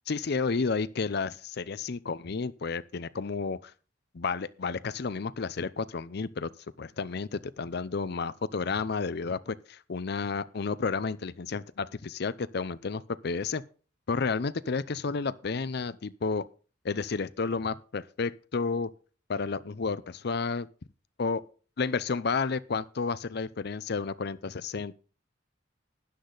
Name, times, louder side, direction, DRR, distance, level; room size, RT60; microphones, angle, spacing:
voice 1, 0.1-3.7 4.1-6.5 6.8-13.6 14.1-16.5 16.8-18.9 19.3-20.7 21.2-21.4 21.8-24.9, left 4 dB, 60° left, 0.6 m, -31 dB
13.0 x 9.8 x 4.0 m
head